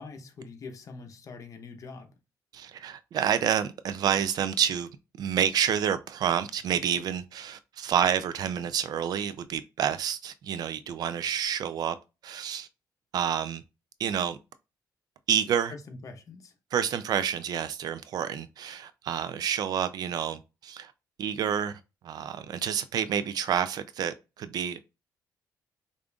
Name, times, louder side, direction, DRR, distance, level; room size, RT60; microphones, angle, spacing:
voice 1, 0.0-2.1 15.7-16.5, left 4 dB, 50° left, 0.8 m, -44 dB
voice 2, 2.5-4.9 5.2-12.0 12.2-12.7 13.1-13.6 14.0-14.4 15.3-15.7 16.7-20.9 21.2-24.8, right 9 dB, 65° right, 0.4 m, -29 dB
5.0 x 2.5 x 2.3 m
cardioid pair, 110°, 7 cm